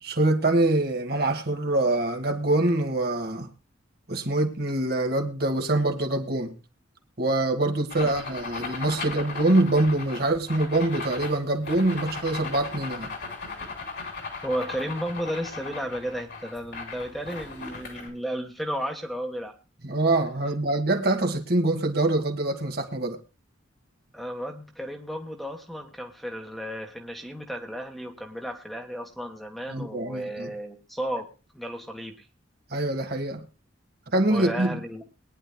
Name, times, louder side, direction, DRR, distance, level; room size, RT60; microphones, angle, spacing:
voice 1, 0.0-3.5 4.1-6.5 7.2-13.1 19.8-23.2 29.7-30.5 32.7-33.4 34.1-34.8, right 2 dB, 50° right, 1.6 m, -24 dB
sound 1, 7.9-18.1, left 4 dB, 60° left, 3.3 m, -37 dB
voice 2, 14.4-19.5 24.1-31.3 31.5-32.3 34.3-35.0, equal, ahead, 1.3 m, -33 dB
22.5 x 10.0 x 2.2 m
head